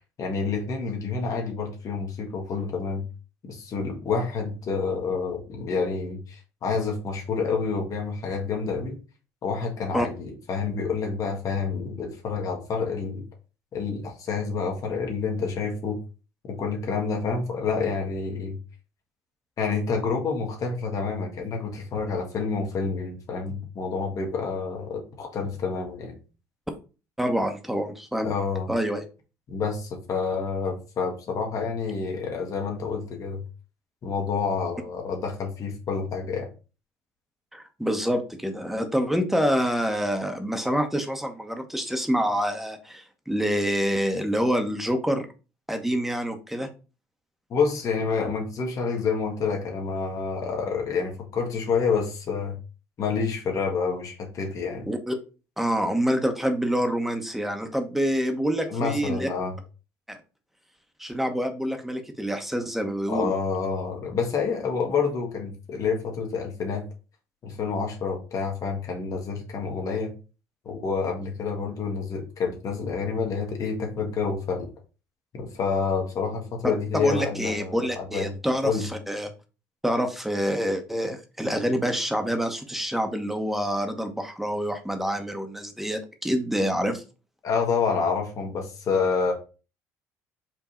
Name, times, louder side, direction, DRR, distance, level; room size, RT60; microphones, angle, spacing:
voice 1, 0.2-3.1 3.4-9.0 9.4-13.2 13.7-16.0 16.5-18.6 19.6-26.2 28.2-28.7 29.5-33.4 34.0-36.5 47.5-52.6 53.0-54.9 58.7-59.6 63.1-66.9 67.4-70.1 70.6-74.7 75.3-78.3 78.6-78.8 87.4-89.3, left 5 dB, 45° left, 1 dB, 1.4 m, -28 dB
voice 2, 27.2-28.3 28.7-29.0 37.5-45.3 45.7-46.7 54.9-55.2 55.6-59.3 60.1-60.2 61.0-63.3 76.9-79.3 79.8-87.0, equal, 5° right, 6 dB, 1.0 m, -27 dB
4.8 x 2.6 x 4.3 m, 0.33 s
hypercardioid pair, 70°, 7 cm